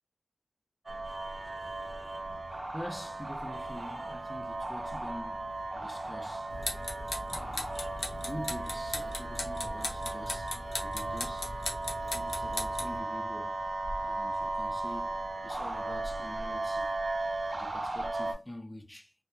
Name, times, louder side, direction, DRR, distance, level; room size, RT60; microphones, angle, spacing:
sound 1, 0.9-18.3, right 2 dB, 50° right, 0.4 m, -36 dB
voice 1, 2.7-6.6 7.3-7.8 8.1-11.6 12.0-13.6 14.0-16.9 17.5-19.1, left 1 dB, 15° left, 0.4 m, -45 dB
sound 2, 6.5-13.0, left 2 dB, 90° left, 0.5 m, -38 dB
2.2 x 2.1 x 2.8 m
wide cardioid pair, 75°, 0 cm